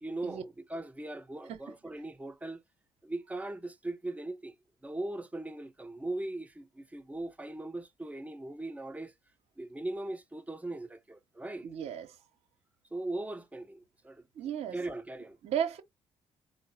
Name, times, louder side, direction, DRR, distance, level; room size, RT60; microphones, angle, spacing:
voice 1, 0.0-2.6 3.0-4.5 4.8-9.1 9.6-11.7 12.9-14.2 14.7-15.4, right 2 dB, 10° right, 1.0 m, -39 dB
voice 2, 11.6-12.2 14.4-14.8 15.4-15.8, right 9 dB, 70° right, 0.9 m, -34 dB
3.7 x 2.1 x 4.1 m
supercardioid pair, 60°, 12 cm